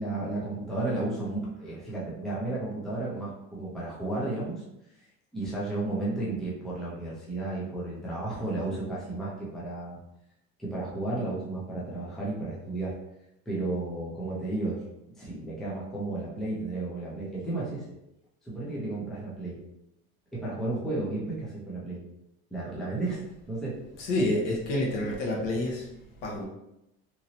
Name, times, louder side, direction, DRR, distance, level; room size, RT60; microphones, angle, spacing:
voice 1, 0.0-4.6 5.3-10.0 10.6-12.9 13.5-14.8 15.2-17.8 18.4-19.6 20.3-22.0 22.5-23.8, right 2 dB, ahead, -7 dB, 0.5 m, -33 dB
voice 2, 24.0-25.8 26.2-26.4, left 1 dB, 75° left, -1 dB, 1.0 m, -28 dB
3.0 x 2.6 x 2.8 m, 0.84 s
cardioid pair, 175°, 30 cm